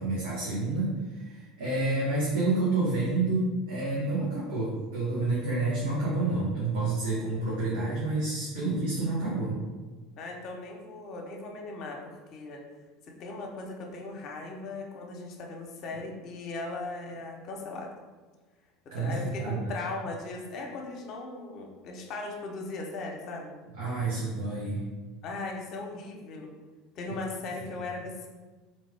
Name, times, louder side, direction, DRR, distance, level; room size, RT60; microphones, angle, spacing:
voice 1, 0.0-9.5 18.9-19.7 23.8-24.8, right 2 dB, 85° right, -7 dB, 1.0 m, -29 dB
voice 2, 10.2-12.6 13.1-17.9 18.9-23.5 25.2-26.5 27.0-28.3, left 3 dB, 55° left, 1 dB, 0.7 m, -38 dB
3.6 x 3.0 x 3.3 m, 1.3 s
hypercardioid pair, 80°, 0 cm